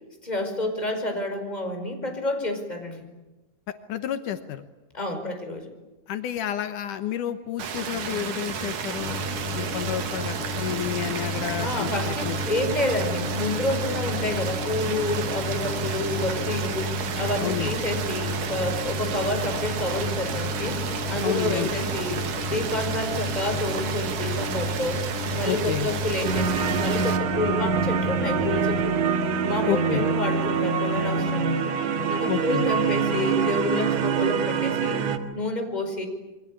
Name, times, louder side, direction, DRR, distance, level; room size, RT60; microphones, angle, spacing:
voice 1, 0.2-3.0 4.9-5.7 11.6-25.0 25.3-28.9 29.4-31.7 32.1-35.0 35.3-36.1, left 2 dB, 10° left, 5 dB, 5.0 m, -29 dB
voice 2, 3.7-4.6 6.1-9.2 9.5-12.4 17.4-17.7 21.1-21.7 25.5-25.9 29.7-30.0 32.2-32.7, left 11 dB, 80° left, 9 dB, 2.6 m, -30 dB
sound 1, 7.6-27.2, right 6 dB, 75° right, 3.5 m, -32 dB
sound 2, 9.0-28.8, left 1 dB, 45° left, 8.7 m, -32 dB
sound 3, 26.2-35.2, right 6 dB, 60° right, 2.7 m, -25 dB
28.5 x 24.0 x 8.7 m, 1.1 s
omnidirectional pair, 3.6 m